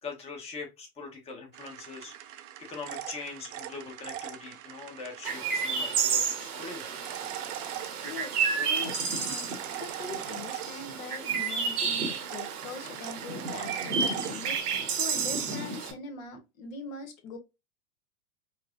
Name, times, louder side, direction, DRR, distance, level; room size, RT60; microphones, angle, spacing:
voice 1, 0.0-6.9, left 4 dB, 15° left, 0.9 m, -42 dB
sound 1, 1.5-5.3 6.6-11.2 12.1-14.6, right 12 dB, 55° right, 0.6 m, -41 dB
Chirp tweet, 5.2-15.9, right 5 dB, 70° right, 1.2 m, -31 dB
voice 2, 8.0-17.4, left 4 dB, 60° left, 1.1 m, -42 dB
4.7 x 2.0 x 2.5 m
hypercardioid pair, 110°, 46 cm